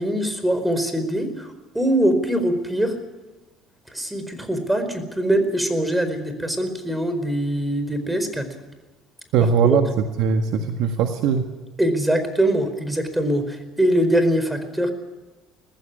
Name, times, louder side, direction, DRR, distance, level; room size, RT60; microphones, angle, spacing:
voice 1, 0.0-3.0 3.9-8.5 9.7-9.8 11.8-14.9, right 1 dB, 5° right, 9 dB, 4.7 m, -22 dB
voice 2, 9.3-11.5, right 6 dB, 70° right, 6 dB, 1.6 m, -20 dB
20.5 x 15.0 x 9.8 m, 1.2 s
hypercardioid pair, 70°, 0 cm